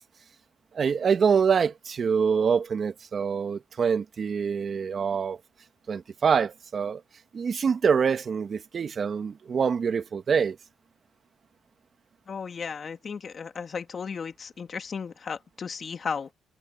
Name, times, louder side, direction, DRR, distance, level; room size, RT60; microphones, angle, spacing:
voice 1, 0.7-5.4 5.9-7.0 7.3-10.6, right 6 dB, 45° right, 1.7 m, -25 dB
voice 2, 12.3-16.3, left 6 dB, 45° left, 2.5 m, -35 dB
cardioid pair, 90°, 0 cm